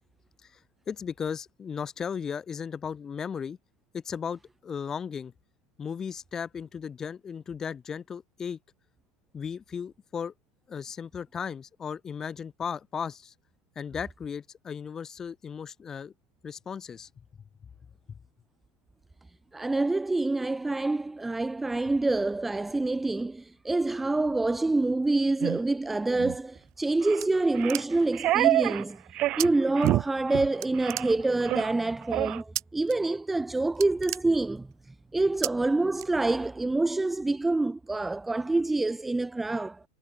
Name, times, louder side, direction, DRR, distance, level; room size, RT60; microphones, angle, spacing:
voice 1, 0.9-3.6 3.9-5.3 5.8-8.6 9.3-10.3 10.7-13.3 13.7-16.1 16.4-17.1 18.1-18.2, left 7 dB, 20° left, 4.8 m, -36 dB
voice 2, 19.5-29.0 29.4-34.7 35.1-39.8, right 2 dB, 5° right, 0.4 m, -26 dB
sound 1, 25.4-25.6 26.1-26.4 27.0-27.2 27.5-28.8 29.1-29.5 29.8-30.0 30.3-30.5 30.8-31.1 31.4-31.7 32.1-32.4, right 15 dB, 40° right, 2.0 m, -27 dB
sound 2, 26.5-28.2 29.4-29.5 29.8-30.3 30.6-31.6 32.6-33.0 33.3-33.4 33.7-34.9 35.4-35.5 36.0-36.6, right 14 dB, 65° right, 3.0 m, -36 dB
hypercardioid pair, 95°, 2 cm